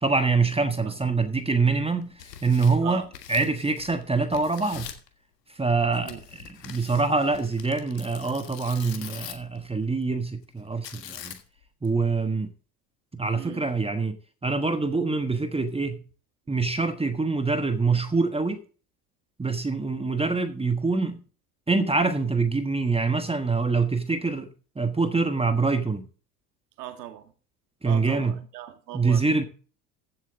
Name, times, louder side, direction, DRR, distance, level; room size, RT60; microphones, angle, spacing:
voice 1, 0.0-3.0 3.3-4.9 5.5-6.2 6.6-11.4 11.8-12.5 13.1-14.2 14.4-16.0 16.5-18.6 19.4-21.2 21.7-24.5 24.7-26.0 27.8-28.3 28.9-29.4, right 4 dB, 10° right, 1.4 m, -25 dB
Tearing, 2.0-4.0 4.3-5.1 6.1-9.6 10.8-11.6, left 9 dB, 85° left, 1.7 m, -43 dB
voice 2, 5.9-6.2 13.3-13.7 26.8-27.3 27.8-29.4, right 12 dB, 80° right, 2.0 m, -39 dB
15.5 x 7.9 x 3.7 m
hypercardioid pair, 75°, 48 cm